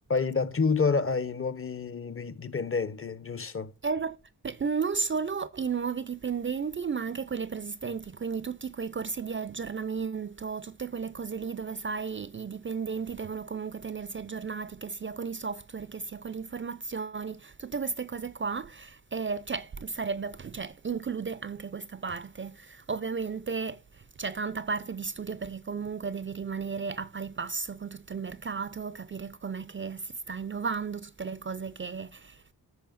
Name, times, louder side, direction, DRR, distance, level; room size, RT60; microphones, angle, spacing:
voice 1, 0.1-3.7, left 4 dB, 35° left, 0.9 m, -28 dB
voice 2, 3.8-4.2 4.4-32.5, right 5 dB, 30° right, 0.5 m, -34 dB
14.5 x 5.0 x 2.5 m
cardioid pair, 80°, 38 cm